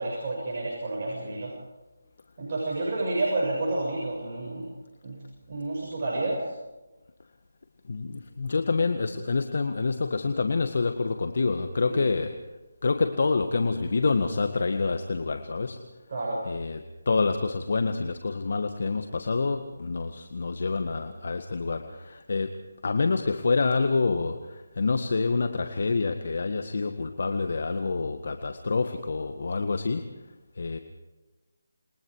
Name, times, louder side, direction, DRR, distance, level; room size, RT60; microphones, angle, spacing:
voice 1, 0.0-1.5 2.4-4.7 5.0-5.2 5.5-6.5 11.9-12.1 16.1-16.4, right 2 dB, 40° right, -3 dB, 6.9 m, -30 dB
voice 2, 7.9-12.4 12.8-15.8 16.5-16.8 17.1-30.1 30.6-30.8, left 4 dB, 55° left, 7 dB, 1.7 m, -27 dB
28.0 x 23.0 x 4.8 m, 1.1 s
figure-of-eight pair, 165°, 0 cm